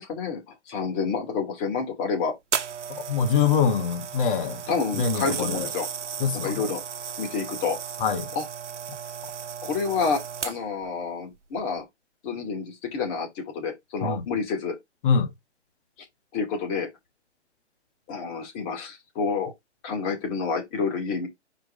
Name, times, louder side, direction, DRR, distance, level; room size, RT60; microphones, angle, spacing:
voice 1, 0.0-2.3 4.7-5.9 6.3-6.8 7.2-7.8 8.3-8.5 9.6-11.8 12.2-14.8 16.3-16.9 18.1-19.5 19.8-21.3, left 5 dB, 25° left, 2.6 m, -29 dB
sound 1, 2.5-10.8 11.6-11.8, right 7 dB, 80° right, 1.0 m, -35 dB
voice 2, 3.1-4.6 4.9-5.7 6.2-6.7 8.0-8.3 14.0-14.2 15.0-15.3, left 6 dB, 45° left, 1.4 m, -24 dB
4.9 x 4.6 x 5.0 m
hypercardioid pair, 140°, 35 cm